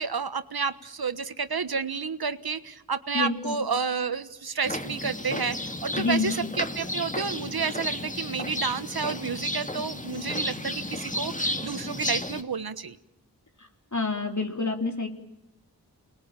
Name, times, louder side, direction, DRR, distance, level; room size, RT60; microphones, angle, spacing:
voice 1, 0.0-13.0, right 5 dB, 70° right, 11 dB, 1.3 m, -30 dB
voice 2, 3.1-3.6 6.0-6.4 13.9-15.1, left 3 dB, 50° left, 3 dB, 3.9 m, -27 dB
sound 1, 4.6-12.4, left 1 dB, 20° left, 1.9 m, -33 dB
29.0 x 21.0 x 8.9 m, 0.91 s
cardioid pair, 45°, 38 cm